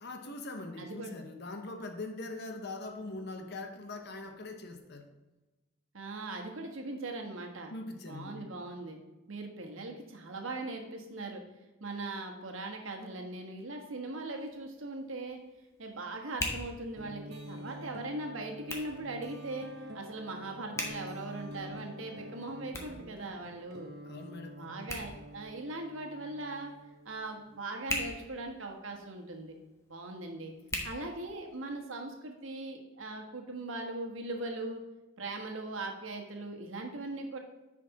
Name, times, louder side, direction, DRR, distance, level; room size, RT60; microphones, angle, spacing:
voice 1, 0.0-5.1 7.7-8.5 24.1-24.9, left 2 dB, 55° left, 5 dB, 0.9 m, -42 dB
voice 2, 0.8-1.1 5.9-7.7 8.1-9.0 9.3-11.4 11.8-15.4 15.8-19.7 19.9-23.9 24.5-26.7 27.0-29.6 29.9-30.5 30.8-34.8 35.2-37.4, right 2 dB, 75° right, 2 dB, 1.4 m, -40 dB
Hands, 14.1-31.8, left 1 dB, 15° left, 1.2 m, -44 dB
sound 1, 17.0-27.5, equal, 55° right, 0.8 m, -47 dB
9.6 x 5.1 x 4.1 m, 1.1 s
head